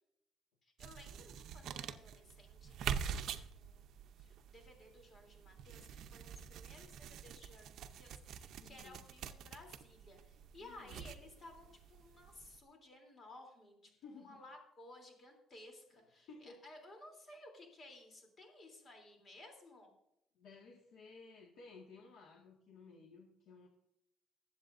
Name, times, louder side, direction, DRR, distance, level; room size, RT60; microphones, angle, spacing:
voice 1, 0.6-19.9, left 2 dB, 35° left, 3 dB, 3.2 m, -57 dB
sound 1, 0.8-12.6, right 8 dB, 65° right, 0.7 m, -46 dB
voice 2, 8.6-9.0 10.6-11.0 13.9-14.4 15.9-16.0 16.3-16.6 20.4-23.7, left 4 dB, 75° left, -1 dB, 1.8 m, -56 dB
20.5 x 8.1 x 2.6 m, 0.81 s
cardioid pair, 140°, 0 cm